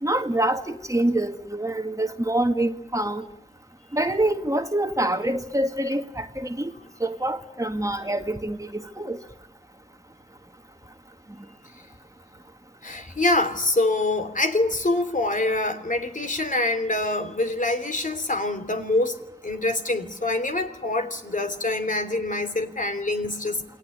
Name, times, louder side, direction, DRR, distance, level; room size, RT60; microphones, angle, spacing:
voice 1, 0.0-3.2 3.9-6.7 7.0-9.2, right 1 dB, 15° right, 2.0 m, -26 dB
voice 2, 12.8-23.6, left 2 dB, 45° left, 3.1 m, -25 dB
28.5 x 20.0 x 9.9 m
wide cardioid pair, 85°, 19 cm